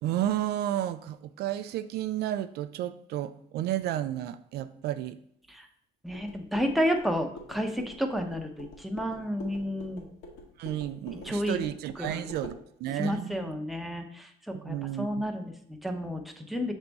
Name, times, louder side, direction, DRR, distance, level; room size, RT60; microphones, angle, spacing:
voice 1, 0.0-5.2 10.6-13.5 14.5-15.2, right 12 dB, 75° right, 12 dB, 0.4 m, -32 dB
voice 2, 6.0-10.0 11.2-11.6 12.0-12.3 12.9-16.7, equal, ahead, 3 dB, 0.8 m, -31 dB
sound 1, 6.1-12.6, left 2 dB, 80° left, 1.7 m, -46 dB
6.6 x 3.5 x 4.0 m, 0.67 s
cardioid pair, 110°, 17 cm